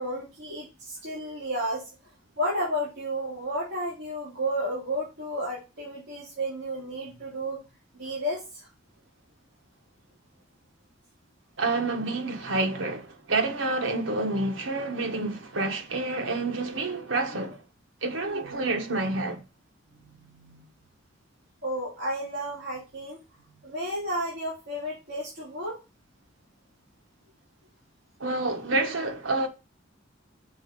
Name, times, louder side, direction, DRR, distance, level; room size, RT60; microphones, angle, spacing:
voice 1, 0.0-1.8 2.4-7.6 7.9-8.7 20.0-20.7 21.6-23.2 23.6-25.8, equal, 55° right, 2.8 m, -32 dB
voice 2, 11.6-17.6 18.0-19.4 28.2-29.5, right 2 dB, 90° right, 1.2 m, -28 dB
6.2 x 4.1 x 5.2 m
head